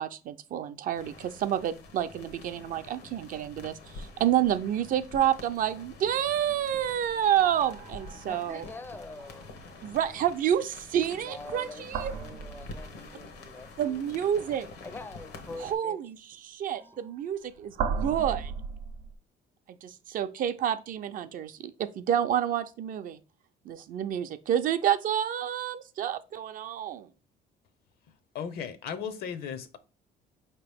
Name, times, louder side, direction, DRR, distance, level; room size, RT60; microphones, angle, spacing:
voice 1, 0.0-8.6 9.8-12.1 13.8-14.7 15.6-16.2 16.4-18.5 19.7-23.2 23.7-27.1, right 10 dB, 55° right, 0.4 m, -29 dB
sound 1, 0.9-15.8, left 3 dB, 85° left, 1.0 m, -47 dB
sound 2, 6.5-9.9 11.7-13.4 16.7-19.2, right 6 dB, 85° right, 0.7 m, -37 dB
voice 2, 8.2-9.6 11.1-14.0 14.8-16.0 16.8-17.0, left 2 dB, 10° left, 0.4 m, -44 dB
voice 3, 28.3-29.8, left 7 dB, 65° left, 0.6 m, -36 dB
4.7 x 2.9 x 3.4 m
cardioid pair, 110°, 17 cm